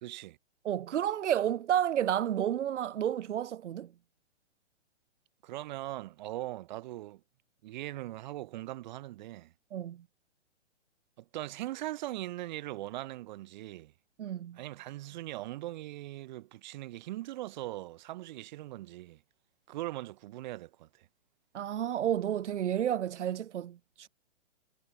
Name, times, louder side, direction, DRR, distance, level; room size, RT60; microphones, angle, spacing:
voice 1, 0.0-0.4 5.4-7.2 7.6-9.5 11.2-13.9 14.5-19.2 19.7-21.1, right 16 dB, 40° right, 2.3 m, -40 dB
voice 2, 0.6-3.9 9.7-10.0 14.2-14.6 21.5-24.1, right 10 dB, 75° right, 0.7 m, -31 dB
hypercardioid pair, 150°, 36 cm